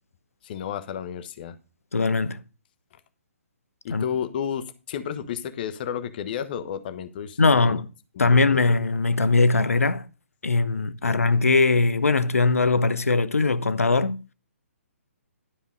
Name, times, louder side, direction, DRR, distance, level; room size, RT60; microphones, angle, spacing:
voice 1, 0.4-1.5 3.8-7.8 8.1-8.7 11.0-11.3, left 8 dB, 40° left, 1.0 m, -32 dB
voice 2, 1.9-2.4 3.9-4.0 7.4-7.9 8.2-10.0 10.4-14.2, left 3 dB, 75° left, 0.9 m, -20 dB
12.0 x 5.3 x 5.0 m
figure-of-eight pair, 130°, 8 cm